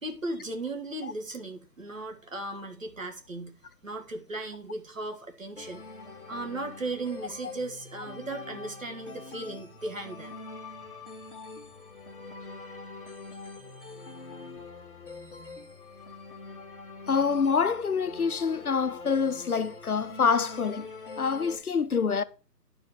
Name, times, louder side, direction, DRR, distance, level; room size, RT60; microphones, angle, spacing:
voice 1, 0.0-3.6 3.8-5.8 6.3-10.3, right 2 dB, 50° right, 1.8 m, -36 dB
sound 1, 5.6-21.6, left 3 dB, 30° left, 1.5 m, -44 dB
voice 2, 17.1-20.9 21.2-22.2, left 5 dB, 65° left, 0.6 m, -26 dB
11.0 x 5.1 x 5.3 m
figure-of-eight pair, 180°, 49 cm